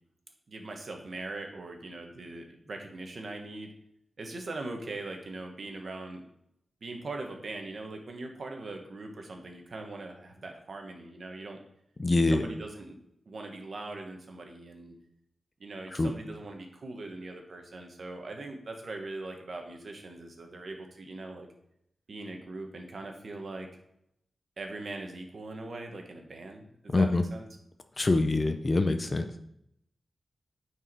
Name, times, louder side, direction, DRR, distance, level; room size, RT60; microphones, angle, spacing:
voice 1, 0.5-3.7 4.2-6.2 6.8-11.6 12.3-13.0 13.3-14.9 15.6-21.5 22.1-23.7 24.6-27.5, right 2 dB, 55° right, 3 dB, 1.4 m, -41 dB
voice 2, 12.0-12.4 16.0-16.1 26.9-27.2 28.0-29.2, left 2 dB, 30° left, 8 dB, 0.5 m, -24 dB
9.1 x 4.7 x 4.7 m, 0.76 s
wide cardioid pair, 145°, 0 cm